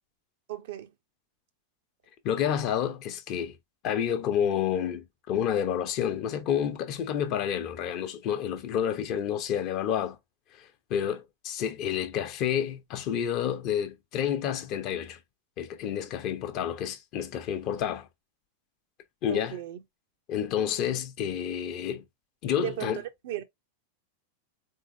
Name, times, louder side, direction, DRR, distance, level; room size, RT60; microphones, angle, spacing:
voice 1, 0.5-0.9 19.3-19.8 22.6-23.4, right 12 dB, 55° right, 0.8 m, -36 dB
voice 2, 2.2-3.6 3.8-10.2 10.5-15.2 15.6-18.1 19.2-19.6 20.3-22.0 22.4-23.0, left 9 dB, 40° left, 0.9 m, -29 dB
3.8 x 3.7 x 2.7 m
figure-of-eight pair, 90°, 0 cm